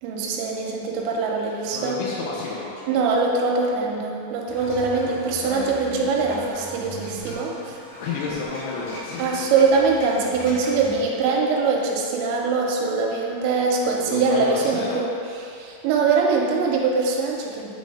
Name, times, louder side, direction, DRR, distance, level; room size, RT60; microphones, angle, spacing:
voice 1, 0.0-2.0 2.9-7.8 9.2-15.1 15.4-17.7, right 4 dB, 85° right, -1 dB, 2.9 m, -23 dB
voice 2, 1.5-2.8 5.3-5.7 8.0-9.5 14.1-15.0, left 4 dB, 90° left, -5 dB, 3.3 m, -31 dB
sound 1, 4.5-10.9, right 1 dB, 70° left, 1.3 m, -39 dB
9.6 x 4.2 x 3.7 m, 2.5 s
omnidirectional pair, 5.4 m